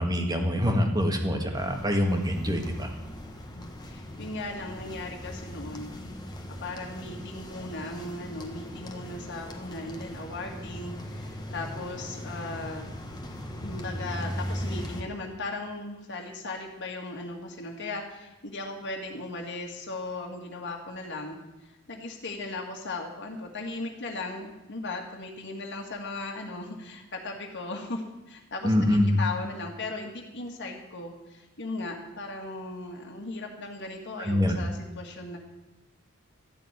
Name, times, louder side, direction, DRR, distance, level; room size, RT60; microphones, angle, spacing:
voice 1, 0.0-2.9 28.6-29.2 34.2-34.6, left 1 dB, 20° right, 3 dB, 1.9 m, -25 dB
sound 1, 1.5-15.0, equal, 20° left, 1.6 m, -39 dB
voice 2, 3.5-5.9 6.6-12.9 13.6-35.4, left 2 dB, 55° left, 1 dB, 2.0 m, -37 dB
13.5 x 7.1 x 9.8 m, 0.99 s
head